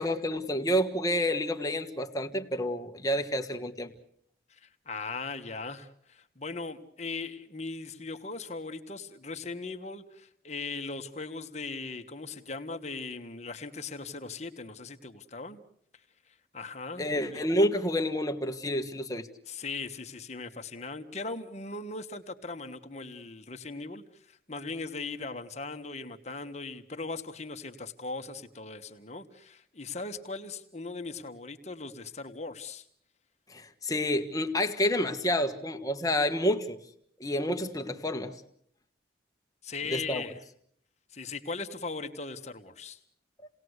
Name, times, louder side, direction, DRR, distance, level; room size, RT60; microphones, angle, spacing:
voice 1, 0.0-3.9 17.0-19.3 33.5-36.8 37.2-38.4 39.9-40.2, left 1 dB, 20° left, 5 dB, 1.5 m, -29 dB
voice 2, 4.5-15.6 16.3-17.5 18.6-18.8 19.5-32.8 39.6-40.4 41.1-43.0, left 3 dB, 35° left, 6 dB, 1.5 m, -39 dB
29.5 x 19.0 x 8.1 m, 0.69 s
head